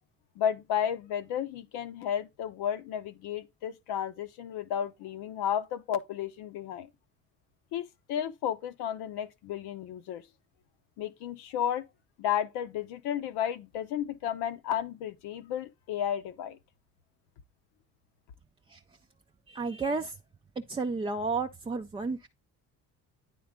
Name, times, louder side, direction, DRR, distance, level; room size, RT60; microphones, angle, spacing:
voice 1, 0.4-6.9 7.7-10.2 11.0-11.9 12.2-16.6, left 9 dB, 70° left, 0.8 m, -33 dB
voice 2, 19.5-20.1 20.7-22.3, right 4 dB, 15° right, 0.4 m, -32 dB
9.3 x 3.8 x 3.6 m
hypercardioid pair, 65°, 41 cm